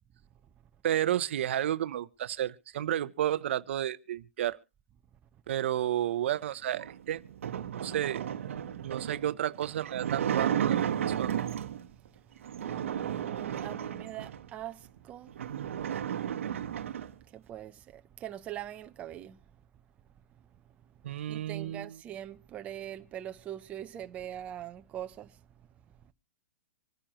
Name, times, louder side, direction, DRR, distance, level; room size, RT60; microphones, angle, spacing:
voice 1, 0.8-4.6 5.5-7.2 7.7-8.3 8.8-10.8 11.2-11.4 21.0-22.0, right 11 dB, 65° right, 0.7 m, -31 dB
sound 1, 6.7-11.9 12.4-14.5 15.0-15.1 15.3-17.1, right 9 dB, 80° right, 1.0 m, -33 dB
voice 2, 12.6-15.3 17.3-19.4 21.3-25.4, right 11 dB, 20° right, 0.6 m, -42 dB
25.5 x 10.0 x 3.0 m
hypercardioid pair, 155°, 7 cm